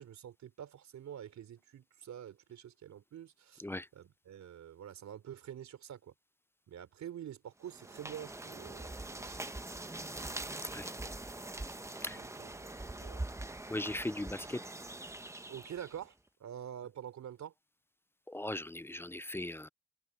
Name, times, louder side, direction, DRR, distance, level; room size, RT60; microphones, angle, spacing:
voice 1, 0.0-3.6 3.9-6.1 6.7-9.5 12.1-13.2 15.5-16.1 16.4-17.5, right 10 dB, 65° right, 3.5 m, -47 dB
sound 1, 7.6-16.1, right 2 dB, 10° right, 1.1 m, -43 dB
voice 2, 13.7-14.6 18.3-19.7, left 1 dB, 10° left, 0.4 m, -38 dB
cardioid pair, 90°, 30 cm